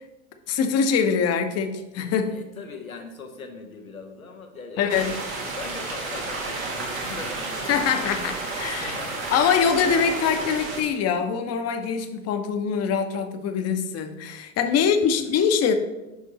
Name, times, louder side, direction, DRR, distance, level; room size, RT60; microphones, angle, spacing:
voice 1, 0.5-2.4 4.8-5.1 7.7-9.0 9.3-15.7, left 6 dB, 40° left, 7 dB, 0.9 m, -23 dB
voice 2, 2.3-5.2 5.4-7.7 8.7-9.4 14.8-15.2, left 4 dB, 90° left, 4 dB, 1.0 m, -40 dB
sound 1, 4.9-10.8, right 3 dB, 75° right, 1.7 m, -31 dB
10.5 x 3.6 x 4.1 m, 1.0 s
figure-of-eight pair, 75°, 40 cm